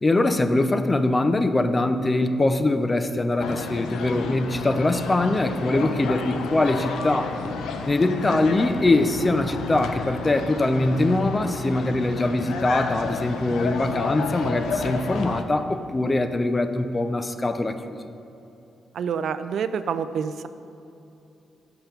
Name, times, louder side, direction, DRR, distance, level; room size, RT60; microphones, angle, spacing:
voice 1, 0.0-7.3 7.9-18.0, left 2 dB, 30° left, 9 dB, 0.5 m, -22 dB
sound 1, 3.4-15.4, left 4 dB, 80° left, 0.5 m, -31 dB
voice 2, 18.9-20.5, right 7 dB, 70° right, 12 dB, 0.3 m, -27 dB
5.8 x 5.7 x 6.8 m, 2.8 s
supercardioid pair, 55°, 0 cm